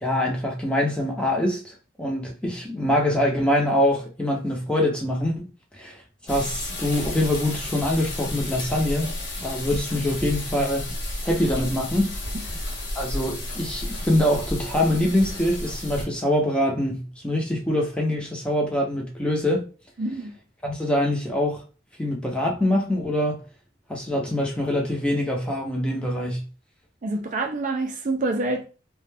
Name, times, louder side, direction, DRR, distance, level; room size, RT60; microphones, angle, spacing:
voice 1, 0.0-5.4 5.7-5.9 6.2-9.1 9.4-10.9 11.2-12.1 12.9-19.6 20.6-21.6 22.0-23.4 23.9-26.5, left 1 dB, 5° left, 0.6 m, -24 dB
sound 1, 6.3-16.0, left 1 dB, 65° left, 1.0 m, -32 dB
voice 2, 20.0-20.3 27.0-28.6, right 2 dB, 45° right, 0.4 m, -27 dB
2.4 x 2.2 x 3.3 m
head